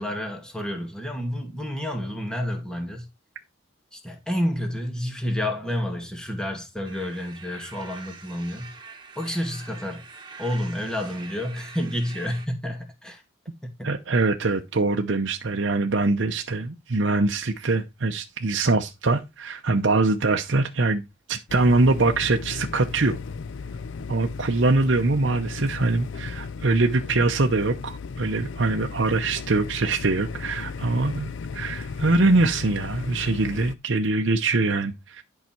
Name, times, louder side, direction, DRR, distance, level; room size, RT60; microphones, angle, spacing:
voice 1, 0.0-3.1 3.9-8.7 9.2-10.0 10.4-13.2 13.8-13.9, equal, 5° left, 2.3 m, -29 dB
sound 1, 6.8-12.5, right 4 dB, 20° right, 2.6 m, -44 dB
voice 2, 13.8-21.0 21.3-23.2 24.1-35.2, right 3 dB, 60° right, 0.8 m, -23 dB
sound 2, 21.5-33.7, left 5 dB, 65° left, 0.4 m, -35 dB
11.0 x 5.7 x 4.5 m
head